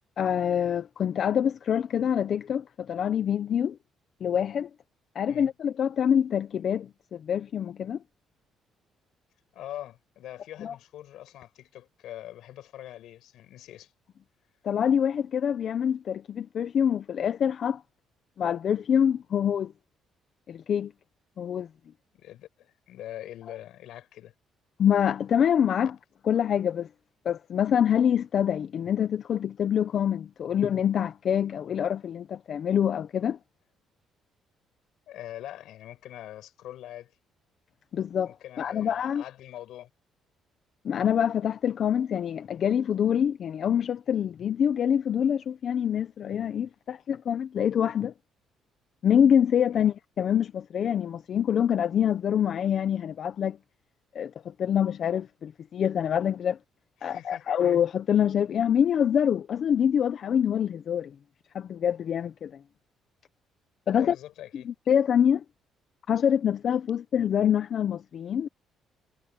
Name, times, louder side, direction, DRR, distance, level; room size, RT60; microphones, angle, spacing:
voice 1, 0.2-3.8 4.2-4.7 5.1-8.0 10.6-10.8 14.6-17.8 18.4-19.7 20.5-20.9 21.4-21.7 24.8-26.0 26.2-26.9 27.2-33.4 37.9-39.2 40.8-48.1 49.0-53.6 54.1-56.6 57.0-61.1 61.5-62.6 63.9-64.2 64.5-65.4 66.1-68.5, left 8 dB, 45° left, 0.7 m, -25 dB
voice 2, 9.5-13.9 22.1-24.3 25.8-25.9 35.1-37.1 38.3-39.9 49.7-49.9 57.0-57.5 63.9-64.7, left 13 dB, 70° left, 7.4 m, -43 dB
cardioid pair, 150°, 0 cm